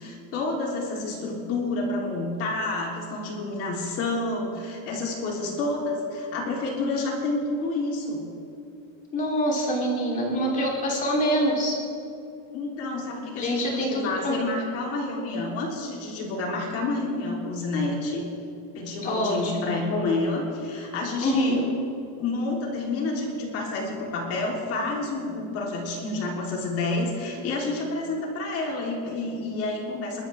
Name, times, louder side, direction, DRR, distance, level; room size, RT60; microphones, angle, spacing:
voice 1, 0.0-8.2 12.5-18.2 18.7-21.7 22.2-30.2, left 2 dB, 40° left, -2 dB, 3.6 m, -29 dB
voice 2, 9.1-11.8 13.4-14.4 19.0-19.8 21.2-21.6, equal, 25° left, -2 dB, 3.5 m, -25 dB
27.5 x 12.5 x 3.6 m, 2.5 s
cardioid pair, 175°, 35 cm